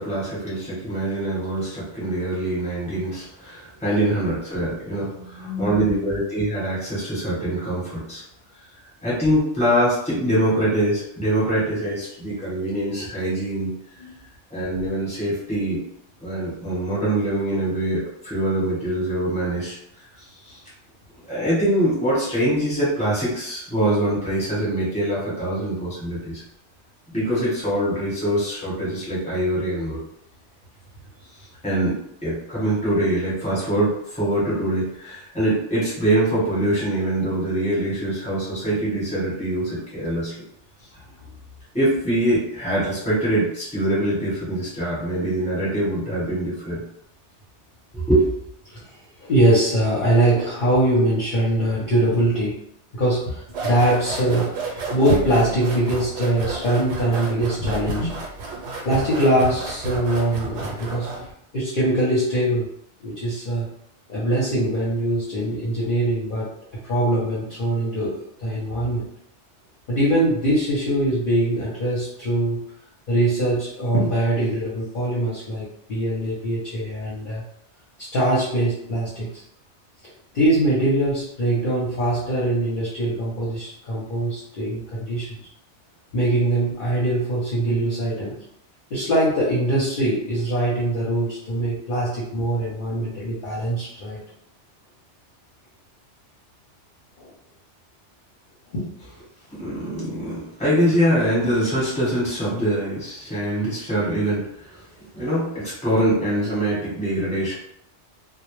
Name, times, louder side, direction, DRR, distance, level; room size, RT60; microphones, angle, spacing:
voice 1, 0.0-8.2 9.0-13.7 14.5-15.8 16.2-19.8 20.4-20.6 21.3-26.4 27.1-30.0 31.6-40.5 41.7-46.8 47.9-48.3 99.5-104.8 105.1-107.5, right 1 dB, 5° left, -7 dB, 0.9 m, -24 dB
voice 2, 5.1-6.0 13.3-13.4 14.0-14.1 48.7-52.6 52.9-58.1 58.8-61.1 61.5-62.7 63.0-63.7 64.1-66.5 66.8-69.1 69.9-72.6 73.1-77.4 78.0-79.4 80.3-85.4 86.1-88.3 88.9-94.2 97.2-97.3 98.7-98.9, right 1 dB, 50° left, -8 dB, 0.7 m, -22 dB
sound 1, 53.5-61.3, right 2 dB, 75° right, 0.9 m, -30 dB
2.1 x 2.1 x 3.0 m, 0.73 s
omnidirectional pair, 1.2 m